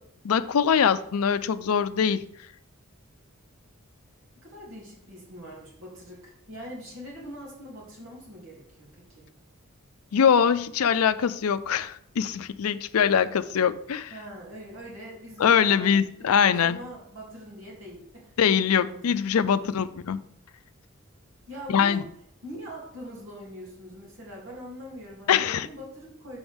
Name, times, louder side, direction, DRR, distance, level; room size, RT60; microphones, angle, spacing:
voice 1, 0.2-2.3 10.1-14.1 15.4-16.8 18.4-20.2 21.7-22.0 25.3-25.7, left 7 dB, 85° left, 0.4 m, -23 dB
voice 2, 4.4-9.3 14.1-18.3 18.7-19.6 21.5-22.0 22.4-26.4, equal, 65° right, 2.7 m, -43 dB
7.0 x 6.1 x 3.5 m
head